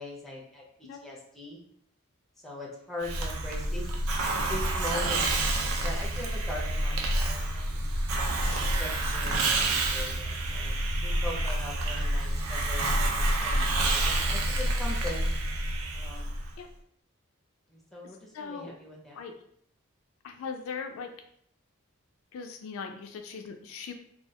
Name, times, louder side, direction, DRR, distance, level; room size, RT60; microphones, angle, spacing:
voice 1, 0.0-1.6 2.4-4.0 4.5-5.2 5.8-7.8 8.5-15.3 15.9-16.4 17.7-19.2, left 1 dB, ahead, -3 dB, 0.5 m, -41 dB
Hiss, 3.0-16.5, right 1 dB, 85° right, 0.4 m, -28 dB
voice 2, 18.3-18.8 19.1-19.3 20.2-21.1 22.3-23.9, left 5 dB, 70° left, 4 dB, 0.3 m, -39 dB
2.2 x 2.1 x 2.7 m, 0.68 s
head